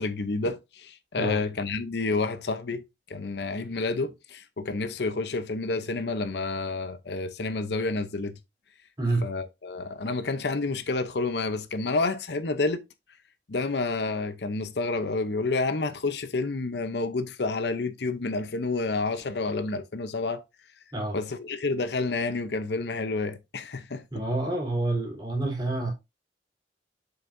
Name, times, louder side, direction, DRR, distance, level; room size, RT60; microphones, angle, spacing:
voice 1, 0.0-2.8 3.1-8.4 9.2-12.8 13.5-20.4 21.1-24.0, left 3 dB, 70° left, 0.7 m, -29 dB
voice 2, 24.1-25.9, right 2 dB, 25° right, 3.3 m, -28 dB
7.2 x 5.8 x 2.6 m
head